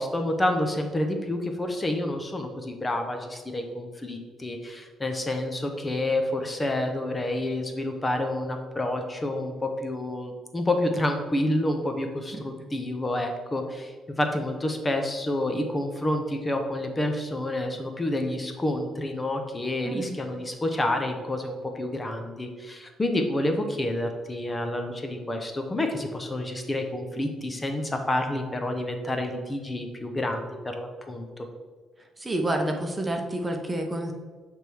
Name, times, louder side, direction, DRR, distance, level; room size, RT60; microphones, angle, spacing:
voice 1, 0.0-31.5, left 1 dB, 20° left, 5 dB, 0.8 m, -29 dB
voice 2, 32.2-34.1, right 1 dB, 20° right, 3 dB, 0.9 m, -29 dB
7.9 x 3.5 x 4.6 m, 1.4 s
cardioid pair, 90°, 0 cm